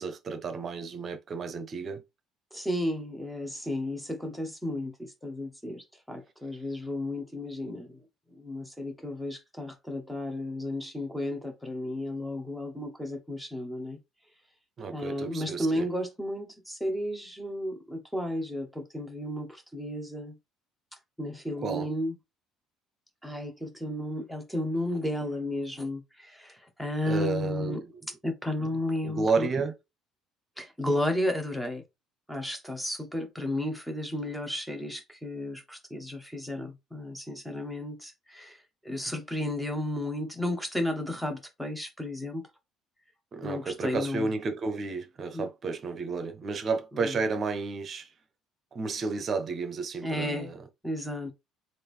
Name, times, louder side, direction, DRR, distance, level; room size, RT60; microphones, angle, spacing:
voice 1, 0.0-2.0 14.8-15.9 21.6-21.9 27.0-27.9 29.0-29.8 43.3-48.1 48.7-50.6, right 4 dB, 30° right, 0.7 m, -32 dB
voice 2, 2.5-8.0 8.4-14.0 14.9-20.4 21.2-22.1 23.2-27.8 28.2-29.5 30.6-31.8 32.3-42.5 43.4-44.3 45.3-45.5 46.9-47.2 50.0-50.5 50.8-51.3, left 1 dB, ahead, 0.9 m, -33 dB
3.7 x 2.6 x 3.2 m
cardioid pair, 155°, 0 cm